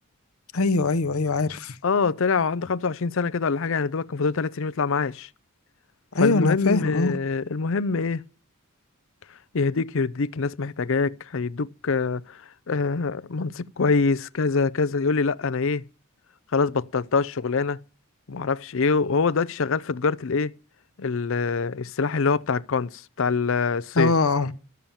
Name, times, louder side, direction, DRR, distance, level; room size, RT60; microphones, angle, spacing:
voice 1, 0.5-1.7 6.1-7.2 24.0-24.5, left 3 dB, 80° left, 0.9 m, -22 dB
voice 2, 1.8-5.3 6.2-8.2 9.5-15.8 16.5-17.8 18.3-20.5 21.0-24.2, left 4 dB, 60° left, 0.6 m, -25 dB
13.5 x 7.1 x 8.9 m
head